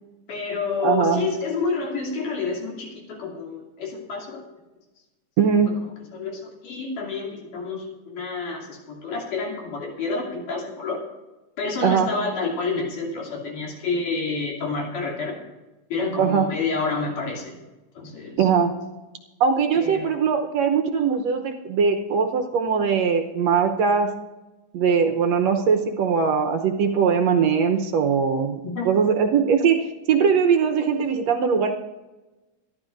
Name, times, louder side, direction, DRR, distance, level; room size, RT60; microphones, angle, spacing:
voice 1, 0.3-4.4 6.1-11.0 11.6-15.4 15.9-17.6 18.0-18.5 19.8-20.1 28.6-28.9, left 4 dB, 90° left, -2 dB, 4.5 m, -29 dB
voice 2, 0.8-1.3 5.4-5.7 11.8-12.1 16.2-16.5 18.4-18.7 19.4-24.1 24.7-31.7, right 6 dB, 70° right, 5 dB, 1.9 m, -21 dB
24.5 x 12.0 x 2.6 m, 1.1 s
omnidirectional pair, 3.6 m